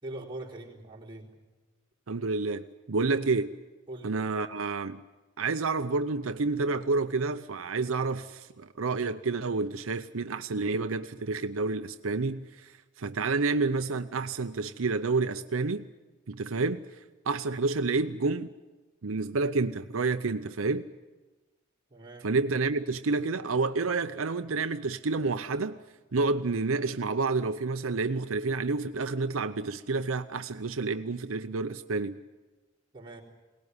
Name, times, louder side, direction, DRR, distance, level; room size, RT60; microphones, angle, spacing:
voice 1, 0.0-1.3 3.9-4.1 21.9-22.3 32.9-33.2, right 1 dB, 25° right, 4.1 m, -42 dB
voice 2, 2.1-3.6 4.0-5.0 5.4-15.8 16.3-16.8 17.3-18.5 19.0-20.9 22.2-25.8 26.1-32.2, right 3 dB, 85° right, 0.7 m, -29 dB
22.5 x 18.5 x 9.7 m
head